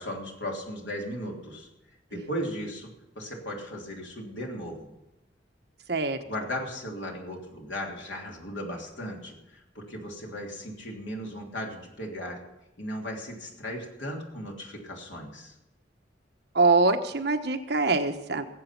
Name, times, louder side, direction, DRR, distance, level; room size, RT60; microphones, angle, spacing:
voice 1, 0.0-1.7 2.1-4.9 6.2-12.4 12.8-15.5, equal, 90° left, 0 dB, 3.1 m, -36 dB
voice 2, 16.5-18.5, right 3 dB, 60° right, 6 dB, 1.2 m, -24 dB
19.0 x 8.1 x 6.0 m, 0.92 s
head